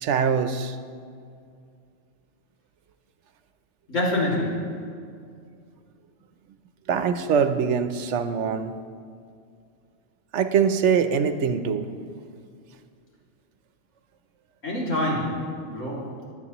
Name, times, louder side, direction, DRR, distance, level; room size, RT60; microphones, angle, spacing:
voice 1, 0.0-0.8 6.9-8.7 10.3-11.9, right 6 dB, 75° right, 10 dB, 0.9 m, -23 dB
voice 2, 3.9-4.8 14.6-16.2, left 1 dB, 85° left, -5 dB, 2.9 m, -26 dB
21.5 x 7.7 x 3.0 m, 2.3 s
omnidirectional pair, 1.2 m